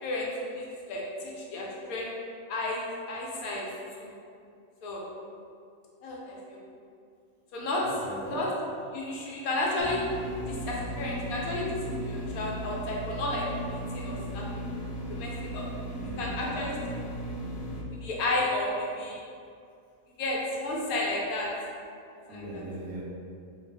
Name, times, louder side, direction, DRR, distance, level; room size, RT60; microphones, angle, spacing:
voice 1, 0.0-2.1 2.5-3.7 4.0-4.1 4.8-5.1 6.0-6.6 7.5-7.9 8.3-10.0 10.5-11.7 12.0-13.5 13.9-14.6 15.1-15.6 16.2-17.0 18.0-19.2 20.2-21.5 22.3-22.6, left 2 dB, 85° left, -3 dB, 1.1 m, -32 dB
voice 2, 7.8-8.4 15.9-16.4 22.3-23.0, right 2 dB, 65° right, -6 dB, 0.8 m, -40 dB
sound 1, 9.8-17.8, right 1 dB, 60° left, 0.4 m, -36 dB
2.4 x 2.3 x 3.2 m, 2.4 s
omnidirectional pair, 1.5 m